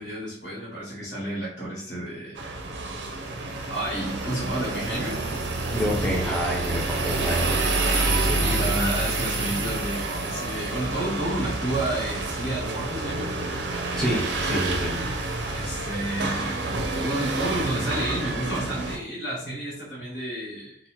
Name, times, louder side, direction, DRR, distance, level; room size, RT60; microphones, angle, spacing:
voice 1, 0.0-2.4 3.7-5.2 5.8-6.4 8.4-13.4 15.5-20.8, right 1 dB, 70° left, -7 dB, 1.2 m, -31 dB
sound 1, 2.3-19.0, right 2 dB, 85° right, 0.4 m, -28 dB
voice 2, 5.7-7.6 8.2-8.4 14.0-15.0, equal, 5° left, -3 dB, 0.6 m, -28 dB
2.8 x 2.1 x 2.9 m, 0.64 s
head